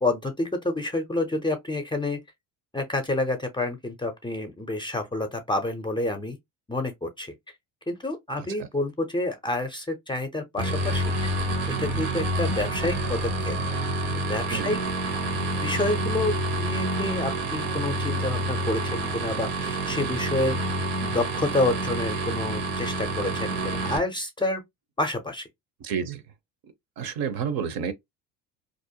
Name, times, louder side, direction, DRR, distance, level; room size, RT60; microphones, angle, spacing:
voice 1, 0.0-2.2 2.7-6.4 6.7-7.3 7.9-11.3 11.8-13.6 14.1-14.8 15.6-20.7 21.0-24.6 25.0-25.5, left 2 dB, 10° left, 0.5 m, -28 dB
sound 1, 10.6-24.0, right 1 dB, 80° right, 1.1 m, -28 dB
voice 2, 25.8-26.2 27.0-27.9, right 7 dB, 55° right, 0.7 m, -29 dB
2.6 x 2.0 x 2.7 m
supercardioid pair, 95°, 42 cm